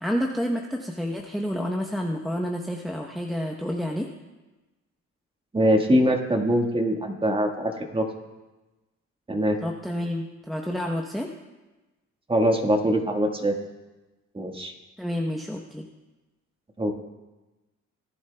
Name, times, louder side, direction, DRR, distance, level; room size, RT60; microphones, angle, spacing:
voice 1, 0.0-4.1 9.6-11.3 15.0-15.8, equal, ahead, 0 dB, 0.8 m, -29 dB
voice 2, 5.5-8.1 9.3-9.6 12.3-13.5 14.3-14.7 16.8-16.9, equal, 15° right, 3 dB, 1.5 m, -23 dB
18.5 x 10.5 x 2.2 m, 1.1 s
cardioid pair, 90°, 30 cm